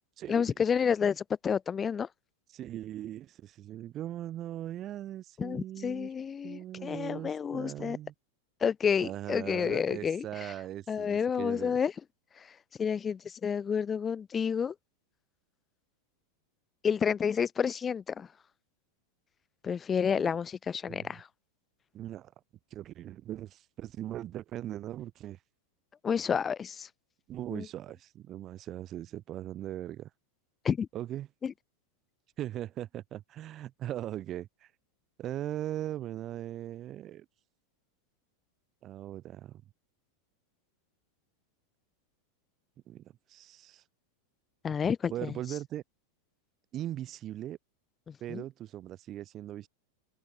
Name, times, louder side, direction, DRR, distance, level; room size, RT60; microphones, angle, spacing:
voice 1, 0.3-2.1 5.4-8.0 8.6-10.5 10.9-11.9 12.4-12.5 12.8-14.7 16.8-18.3 19.6-21.3 26.0-26.9 27.5-27.7 30.6-30.9 31.4-31.5 44.6-45.3 48.1-48.4, left 7 dB, 20° left, 1.0 m, -30 dB
voice 2, 2.5-6.1 6.4-8.1 9.0-11.8 20.1-20.3 20.9-21.1 21.9-22.3 22.7-25.4 27.3-30.1 30.9-31.3 32.4-34.7 35.2-37.3 38.8-39.6 42.9-43.8 45.1-45.8 46.7-47.6 48.2-49.7, right 12 dB, 30° right, 1.0 m, -39 dB
open air
figure-of-eight pair, 90°, 0 cm